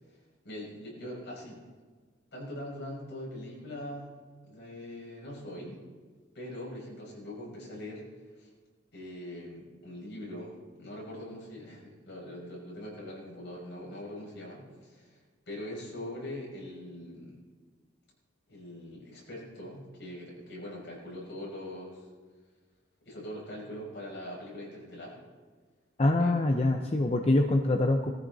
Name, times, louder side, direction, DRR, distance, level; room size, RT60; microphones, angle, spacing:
voice 1, 0.4-1.6 2.3-4.1 4.4-5.8 6.3-8.0 8.3-8.5 8.9-15.2 15.5-17.4 18.5-22.1 23.0-25.2 26.2-26.3, left 1 dB, 60° left, -4 dB, 6.2 m, -42 dB
voice 2, 26.0-28.1, left 2 dB, 30° left, 3 dB, 0.7 m, -24 dB
19.0 x 14.5 x 4.1 m, 1.4 s
head